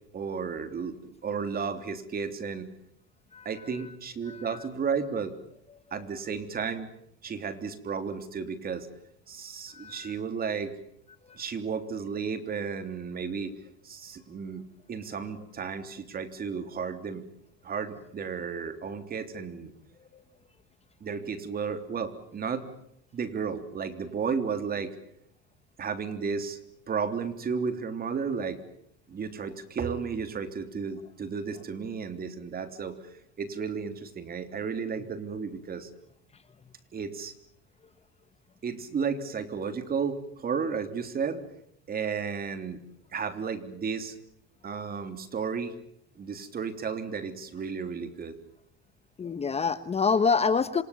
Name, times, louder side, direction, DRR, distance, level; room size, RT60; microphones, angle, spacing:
voice 1, 0.1-2.7 3.5-5.3 5.9-6.9 7.2-8.9 9.3-10.7 11.4-13.5 13.8-14.6 14.9-17.2 17.6-19.7 21.0-22.7 23.1-24.9 25.8-26.6 26.9-28.6 29.1-33.0 33.4-35.9 36.9-37.3 38.6-41.4 41.9-42.8 43.1-44.2 44.6-45.7 46.2-48.3, right 6 dB, 30° right, 9 dB, 3.4 m, -33 dB
voice 2, 4.3-4.7 9.7-10.2 11.3-11.4 20.1-20.2 49.2-50.8, left 5 dB, 20° left, 13 dB, 1.1 m, -27 dB
27.5 x 27.0 x 7.3 m, 0.75 s
cardioid pair, 140°, 29 cm